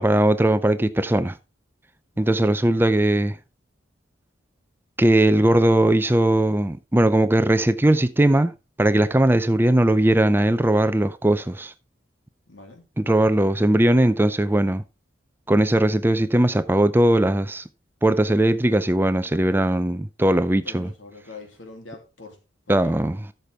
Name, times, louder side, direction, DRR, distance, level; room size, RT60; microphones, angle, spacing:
voice 1, 0.0-1.3 2.2-3.4 5.0-8.5 8.8-11.7 13.0-14.8 15.5-17.6 18.0-20.9 22.7-23.2, right 1 dB, 10° right, 0.5 m, -19 dB
voice 2, 12.5-12.8 20.6-22.4 22.7-23.0, left 3 dB, 90° left, 3.0 m, -43 dB
13.5 x 6.8 x 3.5 m
head